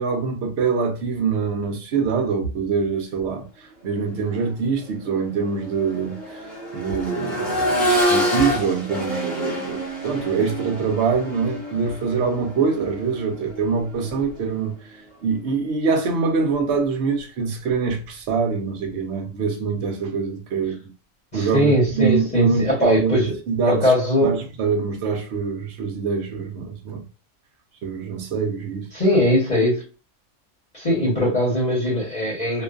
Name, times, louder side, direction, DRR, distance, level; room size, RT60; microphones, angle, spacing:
voice 1, 0.0-20.9 21.3-23.9 24.2-27.1 27.8-28.9, right 5 dB, 65° right, 0.9 m, -24 dB
Accelerating revving vroom, 4.2-4.3 4.8-14.7 16.4-16.5, equal, ahead, 0.8 m, -27 dB
voice 2, 21.3-23.4 23.7-24.3 28.9-29.9 30.7-32.6, left 1 dB, 35° left, 0.9 m, -20 dB
2.6 x 2.3 x 2.3 m
omnidirectional pair, 1.3 m